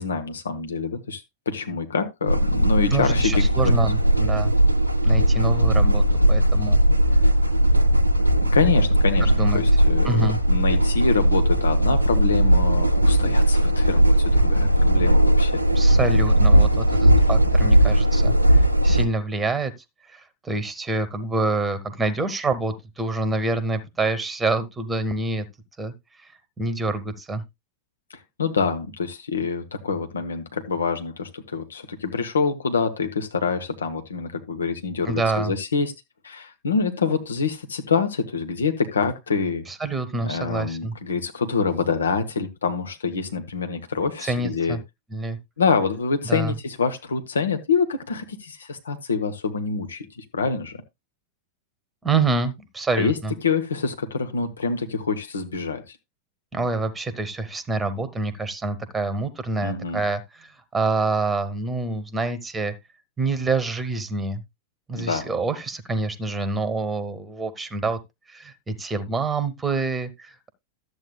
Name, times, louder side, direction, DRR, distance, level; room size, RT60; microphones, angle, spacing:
voice 1, 0.0-3.7 8.4-15.6 28.1-35.9 36.2-39.7 40.2-44.8 45.6-50.8 53.0-56.0 59.6-60.0 65.0-65.3, left 5 dB, 70° left, 0.9 m, -26 dB
sound 1, 2.3-19.1, right 1 dB, 90° right, 0.8 m, -18 dB
voice 2, 2.9-4.5 5.0-6.0 6.3-6.8 9.2-9.6 10.0-10.4 15.7-18.3 18.8-19.7 20.1-25.4 25.8-25.9 26.6-27.4 35.1-35.5 39.7-40.9 44.2-44.8 45.1-45.4 46.2-46.5 52.0-53.3 56.5-62.7 63.2-64.4 64.9-68.0 68.3-70.5, right 3 dB, 15° right, 1.1 m, -26 dB
12.5 x 8.0 x 2.3 m
figure-of-eight pair, 90°, 0 cm